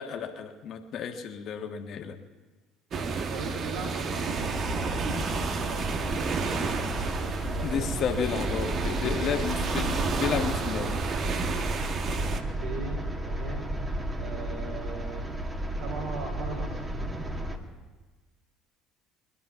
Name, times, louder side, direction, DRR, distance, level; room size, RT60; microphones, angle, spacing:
voice 1, 0.0-2.2 7.6-10.9, left 7 dB, 50° left, 5 dB, 1.5 m, -32 dB
sound 1, 2.9-12.4, right 5 dB, 45° right, 1.2 m, -31 dB
voice 2, 3.0-4.5 5.0-8.1 12.1-12.2 12.6-15.3 15.8-17.1, right 3 dB, 70° right, -2 dB, 2.8 m, -40 dB
sound 2, 4.4-17.6, right 1 dB, 20° right, 1.9 m, -33 dB
21.5 x 11.5 x 5.8 m, 1.3 s
figure-of-eight pair, 60°, 0 cm